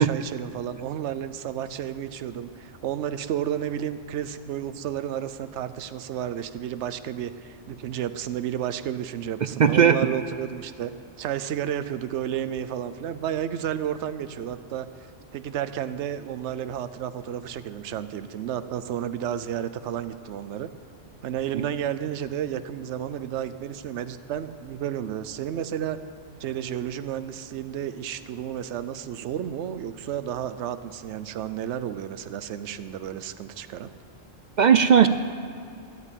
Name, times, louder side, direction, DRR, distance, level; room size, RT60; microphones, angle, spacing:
voice 1, 0.0-10.9 11.2-14.9 15.3-20.7 21.2-26.0 26.4-33.9, right 10 dB, 80° right, 12 dB, 0.9 m, -32 dB
voice 2, 9.6-10.0 21.5-21.6 34.6-35.1, right 7 dB, 60° right, 10 dB, 0.5 m, -16 dB
12.5 x 8.3 x 8.9 m, 2.5 s
omnidirectional pair, 1.2 m